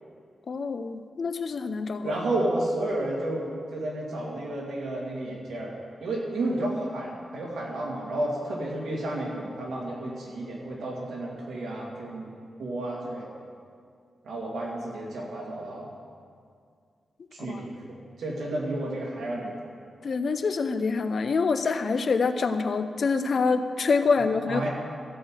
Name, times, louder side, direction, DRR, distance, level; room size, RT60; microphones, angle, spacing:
voice 1, 0.5-2.2 17.4-17.6 20.0-24.7, left 4 dB, 50° left, 9 dB, 0.6 m, -26 dB
voice 2, 2.0-5.7 6.0-12.3 12.6-13.3 14.2-15.9 17.3-19.5 24.4-24.7, right 1 dB, 90° right, -3 dB, 2.4 m, -31 dB
14.0 x 4.8 x 7.6 m, 2.2 s
wide cardioid pair, 150°, 0 cm